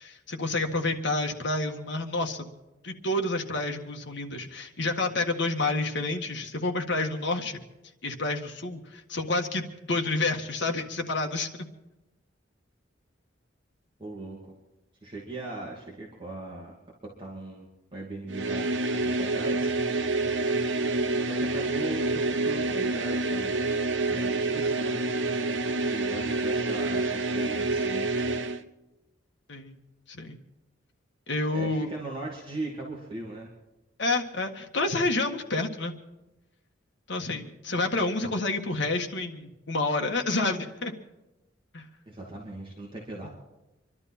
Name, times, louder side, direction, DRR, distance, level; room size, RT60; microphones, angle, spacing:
voice 1, 0.0-2.5 2.8-7.6 8.0-11.5 29.5-29.8 30.1-30.4 31.3-31.9 34.0-35.9 37.1-41.0 41.7-41.9, left 2 dB, 65° left, 3 dB, 1.7 m, -29 dB
voice 2, 14.0-14.5 15.0-16.8 17.2-17.7 17.9-18.7 19.0-19.7 21.1-23.5 24.0-25.2 25.8-28.1 31.5-33.5 42.1-43.3, right 2 dB, 25° right, -3 dB, 2.6 m, -39 dB
sound 1, 18.3-28.6, right 2 dB, 70° right, 1.0 m, -27 dB
27.0 x 12.0 x 4.4 m, 0.99 s
head